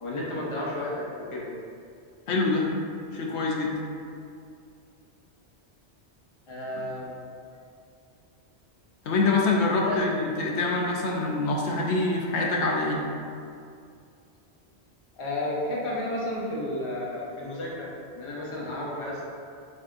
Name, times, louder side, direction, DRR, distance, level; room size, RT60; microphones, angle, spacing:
voice 1, 0.0-1.5 6.5-7.1 9.7-10.0 15.2-17.9 18.2-19.2, left 1 dB, 30° left, -5 dB, 0.8 m, -32 dB
voice 2, 2.3-2.7 3.1-3.8 9.0-13.0, left 3 dB, 75° left, -2 dB, 0.9 m, -25 dB
7.3 x 2.7 x 2.5 m, 2.4 s
omnidirectional pair, 1.1 m